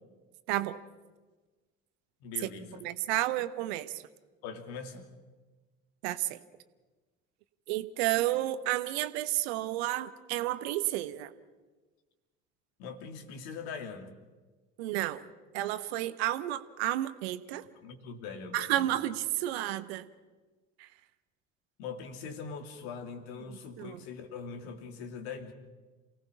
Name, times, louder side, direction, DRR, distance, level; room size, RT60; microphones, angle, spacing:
voice 1, 0.5-0.8 2.4-2.5 2.8-4.0 6.0-6.4 7.7-11.3 14.8-15.2 15.5-17.6 18.5-20.1 20.8-20.9 23.5-24.0, right 15 dB, 65° right, 13 dB, 1.2 m, -31 dB
voice 2, 2.2-2.8 4.4-5.1 12.8-14.1 17.8-18.9 21.8-25.5, left 5 dB, 65° left, 7 dB, 2.5 m, -42 dB
28.5 x 18.0 x 5.9 m, 1.3 s
figure-of-eight pair, 60°, 35 cm